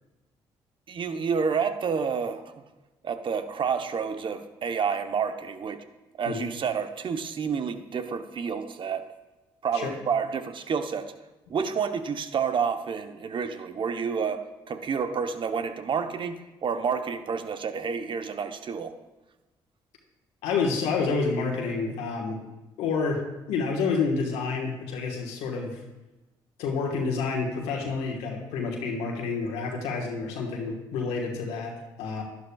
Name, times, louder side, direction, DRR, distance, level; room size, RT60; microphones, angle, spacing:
voice 1, 0.9-2.6 3.0-5.8 6.2-9.1 9.6-11.1 11.5-18.9, right 6 dB, 50° right, 8 dB, 0.9 m, -29 dB
voice 2, 20.4-22.4 22.8-25.8 26.6-32.2, left 4 dB, 85° left, -1 dB, 1.4 m, -29 dB
11.5 x 11.0 x 2.3 m, 1.1 s
supercardioid pair, 60°, 11 cm